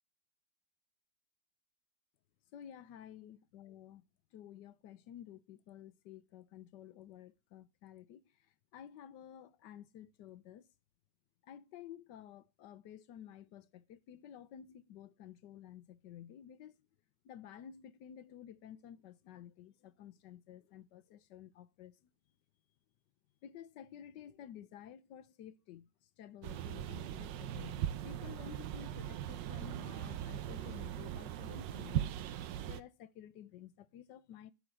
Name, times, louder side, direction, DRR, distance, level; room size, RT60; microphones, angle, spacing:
voice 1, 2.5-4.0 4.3-8.2 8.7-10.6 11.4-16.7 17.2-21.9 23.4-25.9 26.2-32.1 32.7-34.5, left 10 dB, 80° left, 1.3 m, -52 dB
sound 1, 26.4-32.8, right 11 dB, 90° right, 1.4 m, -39 dB
11.0 x 4.1 x 7.5 m
omnidirectional pair, 1.9 m